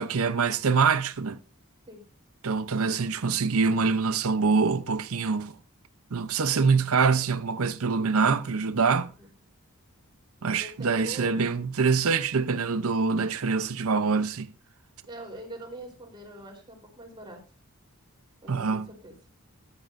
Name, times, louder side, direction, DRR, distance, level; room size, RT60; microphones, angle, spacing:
voice 1, 0.0-1.4 2.4-5.5 6.1-9.1 10.4-14.5 18.5-18.9, right 5 dB, 75° right, 0.7 m, -25 dB
voice 2, 10.6-11.3 15.1-17.4 18.4-19.2, right 1 dB, 20° right, 3.8 m, -43 dB
14.0 x 11.5 x 2.6 m
head